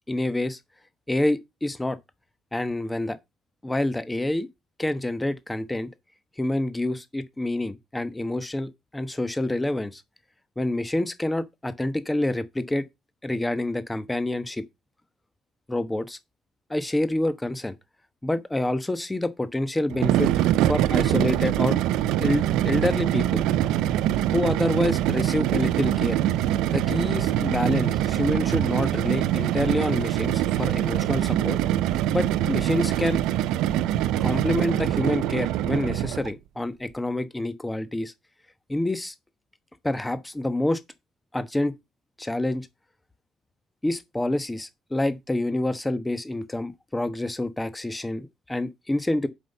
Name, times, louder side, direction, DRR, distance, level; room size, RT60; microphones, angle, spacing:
voice 1, 0.1-0.6 1.1-2.0 2.5-3.2 3.6-4.5 4.8-5.9 6.4-10.0 10.6-12.8 13.2-14.6 15.7-16.2 16.7-17.7 18.2-20.3 20.6-21.8 22.2-23.4 24.3-26.2 26.7-31.6 32.1-33.2 34.2-38.1 38.7-39.1 39.8-40.8 41.3-41.7 42.2-42.7 43.8-49.3, left 1 dB, 15° left, 1.1 m, -27 dB
sound 1, 19.9-36.3, right 12 dB, 80° right, 0.5 m, -24 dB
7.5 x 5.6 x 5.4 m
supercardioid pair, 65°, 0 cm